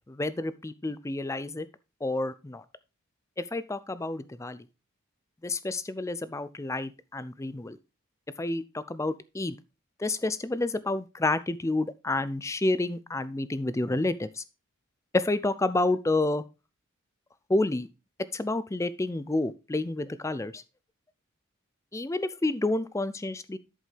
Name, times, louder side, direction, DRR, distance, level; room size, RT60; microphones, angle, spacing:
voice 1, 0.1-1.7 2.0-2.6 3.4-4.6 5.4-7.8 8.4-9.6 10.0-14.4 15.1-16.4 17.5-17.9 18.3-20.6 21.9-23.6, left 2 dB, 15° left, 15 dB, 0.4 m, -29 dB
11.0 x 5.3 x 3.3 m, 0.28 s
head